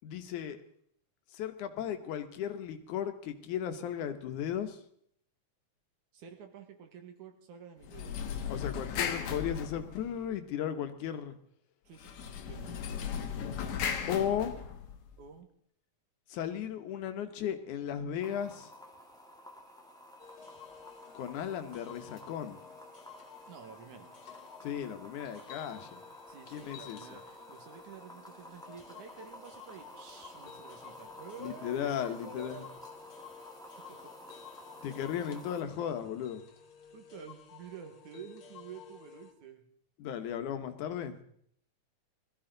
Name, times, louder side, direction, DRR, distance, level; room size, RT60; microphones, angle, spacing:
voice 1, 0.0-0.6 1.3-4.8 8.5-11.3 14.1-14.5 16.3-18.7 21.1-22.6 24.6-26.0 26.5-27.0 31.4-32.6 34.8-36.4 40.0-41.2, left 9 dB, 90° left, 8 dB, 2.6 m, -35 dB
voice 2, 6.1-8.3 11.8-12.8 15.2-15.5 23.5-24.1 26.3-32.7 33.9-34.0 36.9-39.6, right 7 dB, 85° right, 5 dB, 3.1 m, -50 dB
sound 1, 7.8-10.3 12.0-15.1, left 7 dB, 75° left, 2.4 m, -36 dB
sound 2, 18.2-35.6, equal, ahead, 1.2 m, -52 dB
sound 3, 20.2-39.3, left 8 dB, 50° left, 2.1 m, -53 dB
21.0 x 14.0 x 3.9 m, 0.67 s
omnidirectional pair, 3.4 m